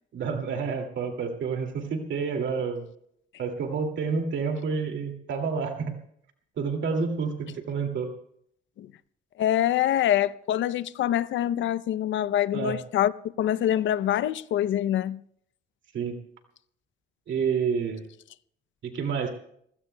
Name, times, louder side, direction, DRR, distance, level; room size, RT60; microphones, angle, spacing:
voice 1, 0.1-2.8 3.4-5.9 6.6-8.1 12.5-12.8 15.9-16.2 17.3-18.0 18.8-19.3, right 5 dB, 70° right, 2.4 m, -29 dB
voice 2, 9.4-13.1 13.4-15.2, left 11 dB, 75° left, 0.6 m, -25 dB
27.0 x 16.0 x 2.2 m
cardioid pair, 90°, 20 cm